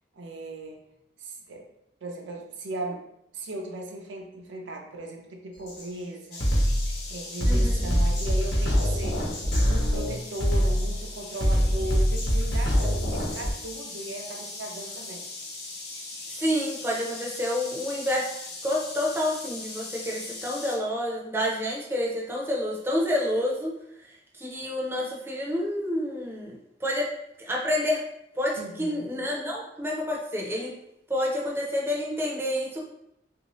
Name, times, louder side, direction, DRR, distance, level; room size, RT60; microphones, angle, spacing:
voice 1, 0.1-0.8 1.2-1.7 2.0-3.0 3.3-6.5 7.1-9.3 9.6-15.2 28.6-29.1, right 1 dB, 85° right, 1 dB, 0.5 m, -37 dB
Drum kit, 5.7-5.8 6.3-13.5, equal, 85° left, 1.0 m, -24 dB
sound 1, 6.3-20.8, left 3 dB, 60° left, 0.7 m, -40 dB
voice 2, 7.4-7.9 16.4-18.3 18.6-23.7 24.4-27.1 27.4-28.0 28.4-30.7 31.1-32.9, left 1 dB, 15° right, -3 dB, 0.5 m, -28 dB
3.1 x 2.7 x 3.0 m, 0.79 s
head